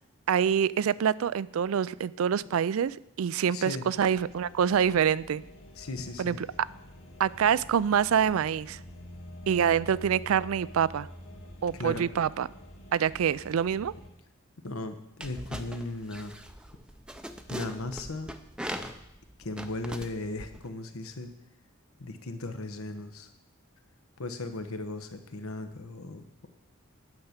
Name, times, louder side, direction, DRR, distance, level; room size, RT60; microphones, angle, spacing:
voice 1, 0.3-5.4 6.2-6.4 7.2-8.8 9.5-11.1 11.6-12.5 12.9-13.9, right 8 dB, 80° right, 20 dB, 0.4 m, -26 dB
voice 2, 3.5-3.9 5.8-6.4 11.7-12.0 14.6-16.4 17.5-18.3 19.4-21.3 22.0-23.3 24.2-26.5, left 2 dB, 85° left, 8 dB, 1.1 m, -37 dB
sound 1, 4.0-14.1, left 1 dB, 65° left, 2.4 m, -47 dB
sound 2, 15.2-20.7, equal, 5° right, 0.5 m, -41 dB
9.6 x 6.0 x 8.1 m, 0.82 s
head